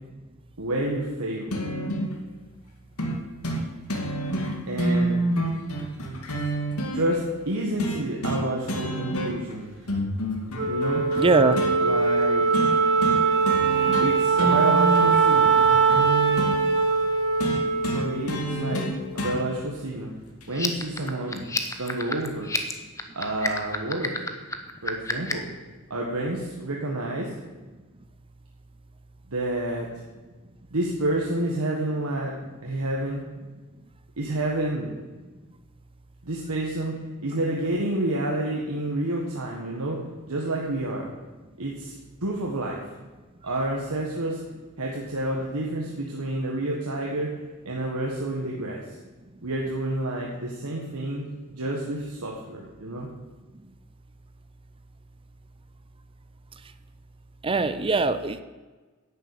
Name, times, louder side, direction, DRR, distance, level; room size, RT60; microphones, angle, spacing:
voice 1, 0.6-1.6 4.7-5.2 6.9-9.7 10.7-11.0 11.8-12.4 14.0-15.5 17.9-18.9 19.1-20.1 20.5-22.5 23.1-24.1 24.8-25.4 25.9-27.3 29.3-29.9 30.7-32.3 32.6-33.2 34.2-34.9 36.2-36.9 37.2-40.0 40.3-41.1 41.6-42.8 43.4-44.4 44.8-47.3 47.6-48.9 49.4-53.1, right 1 dB, 80° right, -2 dB, 1.7 m, -29 dB
sound 1, 1.5-2.1 3.0-3.2 3.4-3.6 3.9-7.0 7.8-8.4 8.7-9.5 9.9-11.7 12.5-12.7 13.0-13.2 13.5-14.1 14.4-16.6 17.4-19.4 20.4-20.5, right 1 dB, 80° left, 2.3 m, -28 dB
Wind instrument woodwind instrument, 10.6-19.1, right 4 dB, 60° right, 2.2 m, -22 dB
voice 2, 11.2-11.6 57.4-58.4, right 3 dB, 25° right, 11 dB, 0.6 m, -21 dB
sound 2, 20.5-25.5, left 3 dB, 15° left, 1.0 m, -30 dB
11.0 x 7.1 x 8.7 m, 1.3 s
head